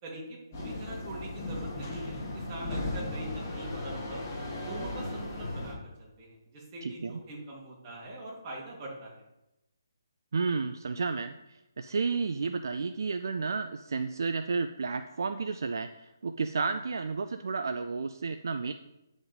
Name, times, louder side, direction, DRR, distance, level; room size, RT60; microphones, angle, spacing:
voice 1, 0.0-4.2 4.7-9.2, right 1 dB, 25° right, -4 dB, 3.1 m, -43 dB
sound 1, 0.5-5.7, left 2 dB, 30° left, 2.3 m, -36 dB
voice 2, 6.8-7.1 10.3-18.7, right 4 dB, 60° right, 8 dB, 0.5 m, -32 dB
9.6 x 5.1 x 5.4 m, 0.92 s
figure-of-eight pair, 145°, 2 cm